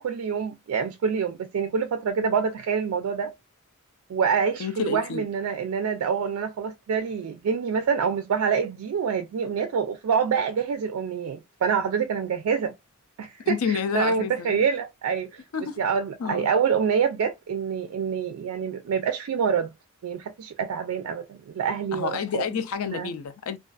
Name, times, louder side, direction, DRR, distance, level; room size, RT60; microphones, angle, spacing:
voice 1, 0.0-3.3 4.1-12.7 13.2-15.4 15.8-19.7 20.0-22.4 22.9-23.1, right 6 dB, 70° right, 0.3 m, -26 dB
voice 2, 4.6-5.2 13.4-14.6 15.5-15.8 16.2-16.5 21.9-23.6, left 6 dB, 70° left, 0.4 m, -29 dB
2.4 x 2.4 x 2.2 m
head